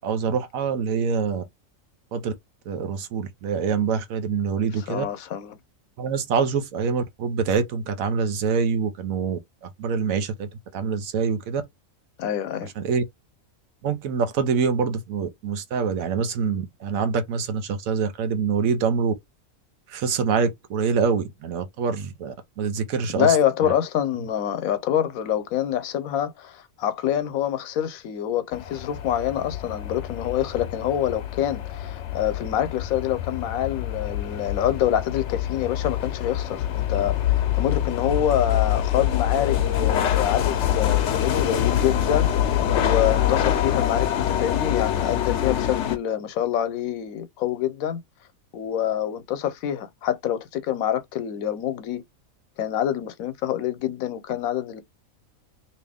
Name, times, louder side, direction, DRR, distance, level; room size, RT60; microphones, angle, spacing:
voice 1, 0.0-1.4 2.1-2.3 2.7-5.1 6.0-11.6 12.8-13.0 13.8-19.1 19.9-23.4 23.6-23.7, right 6 dB, 80° right, 1.1 m, -25 dB
voice 2, 4.9-5.6 12.2-12.7 23.2-48.0 48.5-52.0 52.6-54.8, left 10 dB, 90° left, 1.1 m, -26 dB
sound 1, 28.5-46.0, left 11 dB, 65° left, 0.8 m, -25 dB
2.9 x 2.8 x 3.4 m
omnidirectional pair, 1.4 m